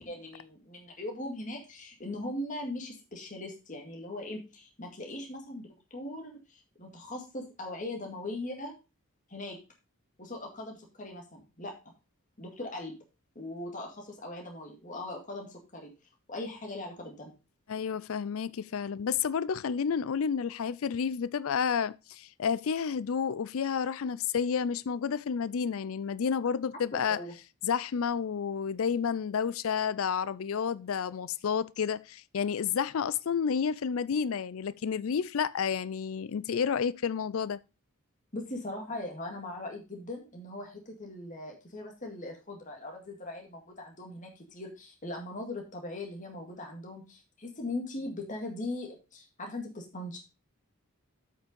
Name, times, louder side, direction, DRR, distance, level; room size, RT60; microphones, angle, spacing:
voice 1, 0.0-8.7 9.3-9.6 10.2-11.7 12.4-13.0 13.4-15.9 16.3-17.3 26.9-27.3 38.3-50.2, left 2 dB, 35° left, 2.1 m, -40 dB
voice 2, 17.7-27.2 27.6-37.6, left 6 dB, 70° left, 0.4 m, -30 dB
8.2 x 5.6 x 5.2 m
head